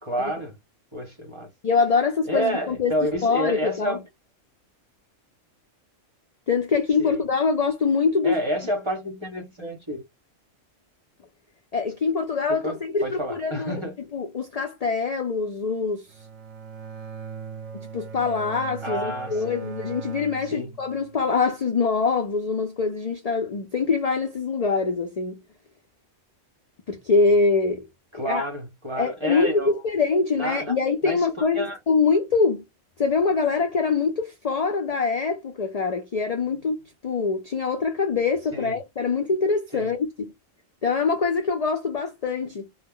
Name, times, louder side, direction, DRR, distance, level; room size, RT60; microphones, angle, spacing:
voice 1, 0.0-0.6 0.9-1.5 2.3-4.0 7.0-7.2 8.2-10.0 12.5-14.0 18.8-19.6 20.5-20.7 28.1-29.7 30.3-30.7 31.0-31.8 38.5-38.7 39.7-39.9, equal, 30° right, 0.7 m, -29 dB
voice 2, 1.6-2.9 3.2-4.0 6.5-8.4 11.7-13.8 14.1-16.1 17.9-25.4 26.9-27.9 28.3-28.5 29.0-32.6 33.0-40.3 40.8-42.7, left 4 dB, 70° left, 0.3 m, -24 dB
Bowed string instrument, 16.1-21.3, right 6 dB, 80° right, 1.0 m, -39 dB
2.3 x 2.0 x 3.6 m
omnidirectional pair, 1.3 m